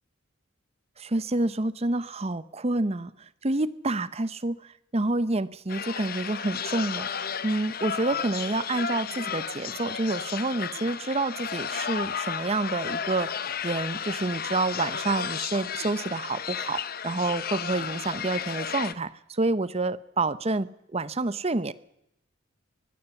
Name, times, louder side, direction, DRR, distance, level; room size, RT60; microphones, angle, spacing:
voice 1, 1.0-4.6 4.9-7.1 7.4-21.7, right 2 dB, 30° right, 16 dB, 0.8 m, -28 dB
sound 1, 5.7-18.9, left 7 dB, 45° left, 0.9 m, -33 dB
23.0 x 18.0 x 7.1 m, 0.80 s
head